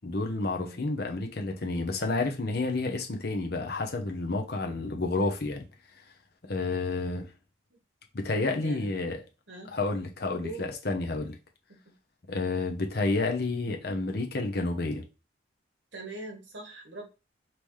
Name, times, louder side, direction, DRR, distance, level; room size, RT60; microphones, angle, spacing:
voice 1, 0.0-5.6 6.4-7.3 8.1-9.2 9.7-11.4 12.3-15.0, left 2 dB, 50° left, 0.8 m, -30 dB
voice 2, 0.6-1.0 7.7-7.8 8.6-9.0 9.5-9.7 10.4-10.7 11.7-11.9 15.9-17.1, right 2 dB, 65° right, 1.4 m, -42 dB
5.4 x 3.0 x 3.2 m
head